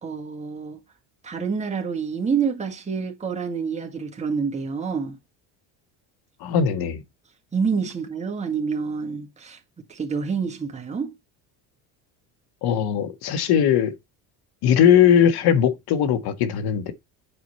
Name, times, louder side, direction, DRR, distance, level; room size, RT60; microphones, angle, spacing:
voice 1, 0.0-0.8 1.2-5.2 7.5-9.6 9.9-11.1, right 5 dB, 15° right, 1.9 m, -27 dB
voice 2, 6.4-7.0 12.6-13.9 14.6-16.9, left 8 dB, 65° left, 1.4 m, -19 dB
8.1 x 4.8 x 4.2 m
cardioid pair, 120°, 41 cm